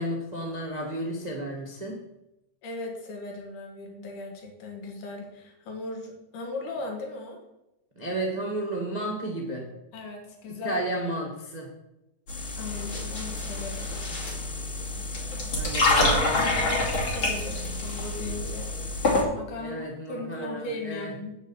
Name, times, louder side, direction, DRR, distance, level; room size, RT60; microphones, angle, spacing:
voice 1, 0.0-2.0 7.9-9.7 10.6-11.7 15.5-16.4 19.6-21.1, right 1 dB, 75° right, 0 dB, 0.4 m, -32 dB
voice 2, 2.6-7.4 9.9-10.8 12.6-13.9 16.4-21.4, left 2 dB, 70° left, 2 dB, 3.3 m, -37 dB
sound 1, 12.3-19.2, left 2 dB, 40° left, 3.0 m, -27 dB
9.2 x 6.2 x 7.2 m, 0.90 s
omnidirectional pair, 3.9 m